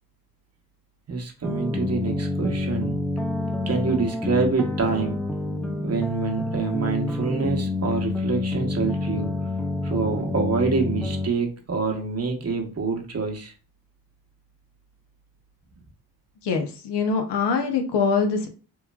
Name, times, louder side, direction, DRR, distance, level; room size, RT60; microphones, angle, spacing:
voice 1, 1.1-3.0 3.7-5.2 5.8-9.3 9.8-13.5, right 4 dB, 40° right, 2 dB, 0.8 m, -26 dB
sound 1, 1.4-11.3, left 2 dB, ahead, 0.4 m, -28 dB
voice 2, 16.4-18.5, left 5 dB, 85° left, 5 dB, 0.7 m, -23 dB
3.0 x 2.2 x 2.3 m, 0.36 s
cardioid pair, 60°, 40 cm